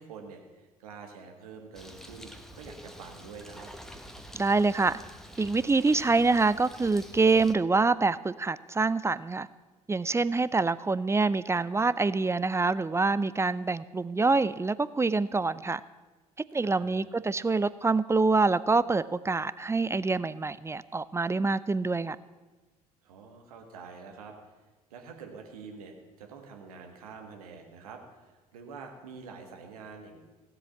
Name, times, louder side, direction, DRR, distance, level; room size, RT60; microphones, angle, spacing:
voice 1, 0.0-3.7 16.6-17.1 23.0-24.3 24.9-30.2, right 5 dB, 75° right, 4 dB, 1.7 m, -46 dB
Bird, 1.7-7.5, equal, ahead, 1.3 m, -47 dB
voice 2, 4.3-5.0 5.4-9.5 9.9-15.8 16.5-22.2, right 3 dB, 15° right, 17 dB, 0.5 m, -26 dB
16.0 x 7.9 x 7.2 m, 1.2 s
figure-of-eight pair, 55°, 19 cm